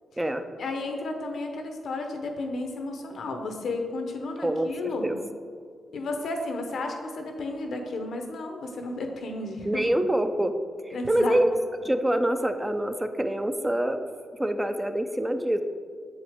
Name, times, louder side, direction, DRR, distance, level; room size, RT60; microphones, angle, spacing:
voice 1, 0.6-5.1 5.9-9.8 10.9-11.3, left 2 dB, 75° left, 4 dB, 0.9 m, -33 dB
voice 2, 9.7-10.5 10.9-11.6 11.8-14.1 14.4-15.6, right 1 dB, 15° right, 8 dB, 0.5 m, -25 dB
6.9 x 4.8 x 3.6 m, 2.1 s
supercardioid pair, 55°, 0 cm